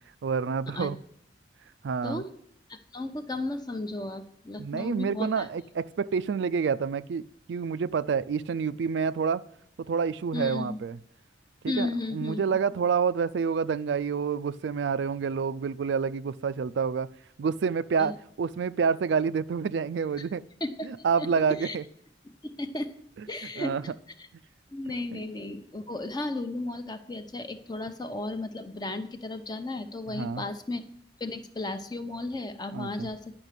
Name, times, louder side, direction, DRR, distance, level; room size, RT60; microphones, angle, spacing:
voice 1, 0.2-1.0 1.8-2.2 4.6-9.4 9.8-11.0 11.6-17.1 17.4-20.4 20.8-21.8 23.6-23.8 25.1-25.2 30.1-30.4 32.7-33.1, right 6 dB, 70° right, 14 dB, 0.4 m, -28 dB
voice 2, 2.7-5.5 10.3-10.8 11.7-12.4 18.0-18.2 20.6-20.9 21.2-21.8 22.4-22.9 23.3-23.8 24.2-24.3 24.7-30.9 31.2-33.3, left 2 dB, 20° left, 8 dB, 0.7 m, -34 dB
10.5 x 5.9 x 8.1 m, 0.69 s
head